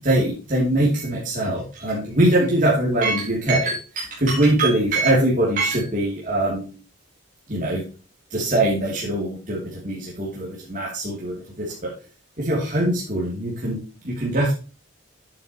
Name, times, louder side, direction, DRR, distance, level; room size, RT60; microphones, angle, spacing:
voice 1, 0.0-6.7 7.5-7.8 8.3-11.9 12.4-13.8 14.0-14.5, right 1 dB, 40° right, -5 dB, 2.9 m, -22 dB
8.9 x 7.7 x 3.0 m, 0.35 s
head